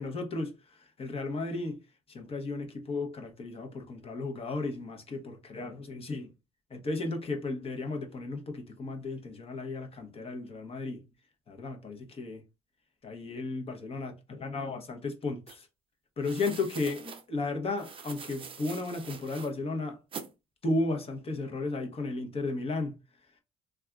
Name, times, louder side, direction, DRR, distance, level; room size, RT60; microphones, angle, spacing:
voice 1, 0.0-1.8 2.1-6.3 6.7-11.0 11.5-12.4 13.0-15.7 16.2-20.0 20.6-23.0, left 3 dB, 35° left, 0.8 m, -34 dB
sound 1, 15.5-15.6 16.2-17.2 17.8-19.5 20.1-20.3, right 6 dB, 30° right, 0.5 m, -44 dB
3.3 x 2.3 x 2.3 m
cardioid pair, 110°, 17 cm